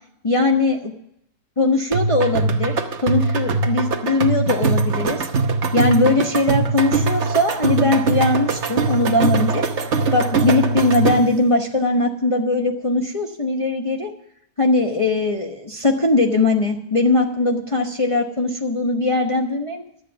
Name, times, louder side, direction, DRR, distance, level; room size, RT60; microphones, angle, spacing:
voice 1, 0.2-0.9 1.6-5.3 5.7-9.7 10.1-14.1 14.6-19.8, left 2 dB, 25° left, 1 dB, 1.0 m, -20 dB
sound 1, 1.9-11.4, right 3 dB, 50° right, 1.2 m, -21 dB
12.0 x 8.3 x 7.0 m, 0.73 s
omnidirectional pair, 1.6 m